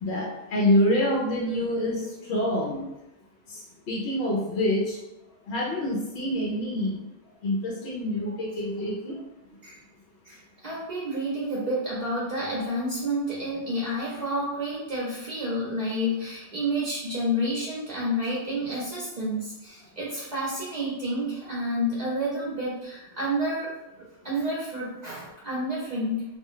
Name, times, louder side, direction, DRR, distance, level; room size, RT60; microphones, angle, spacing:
voice 1, 0.0-2.8 3.5-3.6 3.9-5.0 5.5-7.0 7.4-9.2, left 1 dB, 80° left, -4 dB, 0.9 m, -26 dB
voice 2, 10.2-23.7 24.2-26.3, equal, 45° right, -7 dB, 0.7 m, -29 dB
2.4 x 2.1 x 3.7 m, 0.92 s
omnidirectional pair, 1.1 m